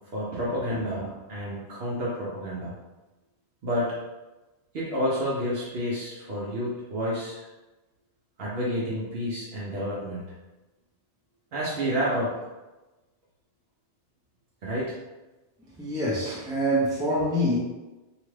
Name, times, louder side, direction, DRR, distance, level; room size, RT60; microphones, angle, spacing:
voice 1, 0.1-2.7 3.6-3.9 4.7-7.4 8.4-10.3 11.5-12.3 14.6-15.0, equal, 65° right, -6 dB, 0.9 m, -29 dB
voice 2, 15.6-17.6, equal, 5° right, -7 dB, 0.5 m, -26 dB
2.8 x 2.4 x 3.1 m, 1.1 s
omnidirectional pair, 1.1 m